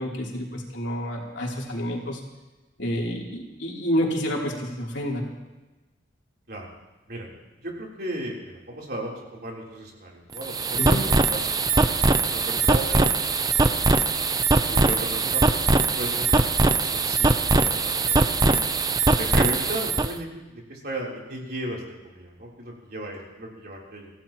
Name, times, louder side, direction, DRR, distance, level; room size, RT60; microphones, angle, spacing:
voice 1, 0.0-2.2 2.8-5.3 10.8-11.0, equal, 75° left, -2 dB, 3.2 m, -28 dB
voice 2, 7.6-14.0 14.7-16.3 16.6-18.6 19.2-24.1, right 1 dB, 55° right, -3 dB, 3.6 m, -35 dB
sound 1, 10.3-20.1, right 3 dB, 20° right, 0.6 m, -21 dB
25.5 x 16.0 x 3.0 m, 1.1 s
head